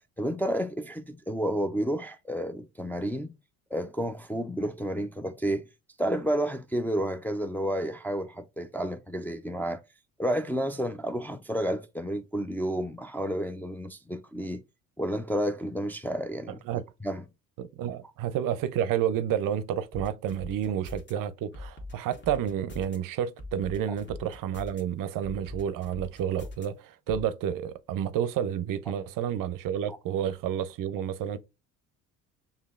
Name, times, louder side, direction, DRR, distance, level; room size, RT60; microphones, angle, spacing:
voice 1, 0.0-3.3 3.7-5.7 6.0-9.8 10.2-14.6 15.0-16.6 17.0-17.2 29.9-30.0, equal, 5° left, 0.4 m, -31 dB
voice 2, 17.6-31.4, right 9 dB, 55° right, 0.5 m, -30 dB
sound 1, 19.9-21.1 21.5-23.0 23.4-24.8 25.2-26.7 27.1-27.2, left 2 dB, 30° left, 1.3 m, -41 dB
6.6 x 2.8 x 2.3 m
hypercardioid pair, 60°, 39 cm